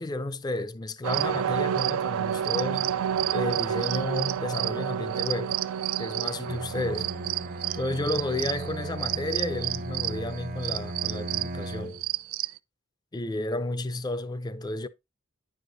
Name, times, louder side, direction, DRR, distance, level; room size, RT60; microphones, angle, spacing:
voice 1, 0.0-2.9 3.3-5.6 6.0-7.1 7.7-12.0 13.1-14.9, left 1 dB, 20° left, 0.4 m, -32 dB
sound 1, 1.0-12.6, right 10 dB, 90° right, 0.4 m, -29 dB
Bowed string instrument, 6.4-12.1, right 2 dB, 45° right, 0.6 m, -37 dB
9.7 x 4.9 x 2.6 m
head